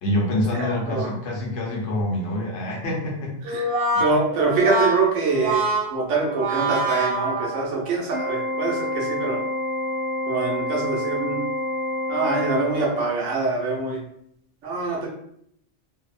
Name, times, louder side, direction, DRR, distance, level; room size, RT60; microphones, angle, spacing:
voice 1, 0.0-3.4 3.9-4.0, left 1 dB, 75° left, -2 dB, 1.0 m, -26 dB
Brass instrument, 3.4-8.0, right 2 dB, 65° right, 1.0 m, -25 dB
voice 2, 4.0-9.4 10.3-11.4 12.1-14.0 14.6-15.1, right 3 dB, 85° right, -2 dB, 1.1 m, -24 dB
Organ, 8.1-13.2, left 1 dB, 10° left, 0.4 m, -28 dB
2.7 x 2.0 x 2.4 m, 0.71 s
omnidirectional pair, 1.2 m